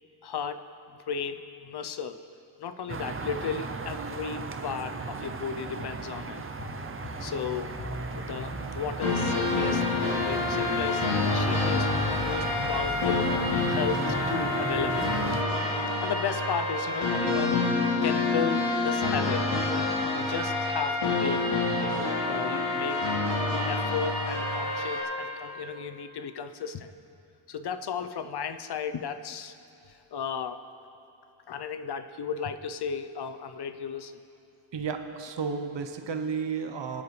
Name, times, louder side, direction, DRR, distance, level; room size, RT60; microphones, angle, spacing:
voice 1, 0.2-0.6 0.9-2.2 2.6-6.4 7.2-7.7 8.1-13.3 13.7-15.1 16.0-17.6 18.0-19.5 20.1-21.5 21.8-23.1 23.7-26.9 27.5-29.5 29.9-30.6 31.5-34.2, left 6 dB, 55° left, 10 dB, 0.6 m, -34 dB
sound 1, 2.9-15.4, right 4 dB, 30° right, 0.5 m, -36 dB
sound 2, 6.6-13.8, left 3 dB, 35° left, 0.9 m, -42 dB
sound 3, 9.0-25.0, left 3 dB, 80° left, 2.8 m, -27 dB
voice 2, 34.7-37.0, right 5 dB, 65° right, 7 dB, 0.9 m, -32 dB
23.0 x 9.5 x 3.2 m, 2.6 s
wide cardioid pair, 160°, 48 cm